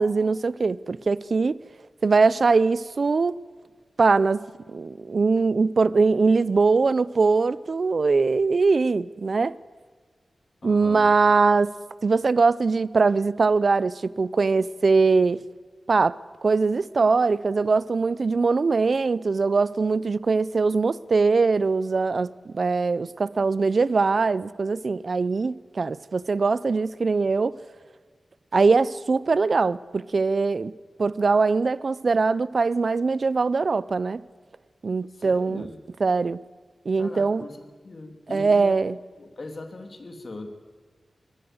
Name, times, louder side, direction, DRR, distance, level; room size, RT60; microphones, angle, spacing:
voice 1, 0.0-1.6 2.0-3.4 4.0-9.6 10.6-11.7 12.0-15.4 15.9-27.6 28.5-30.7 31.0-34.2 34.8-35.7 36.0-36.4 36.9-37.4 38.3-38.9, right 4 dB, 60° right, 0.5 m, -22 dB
voice 2, 10.6-11.1 35.1-35.8 37.0-38.7 39.2-40.5, left 2 dB, 55° left, 2.9 m, -40 dB
23.0 x 16.5 x 7.9 m
wide cardioid pair, 75°, 0 cm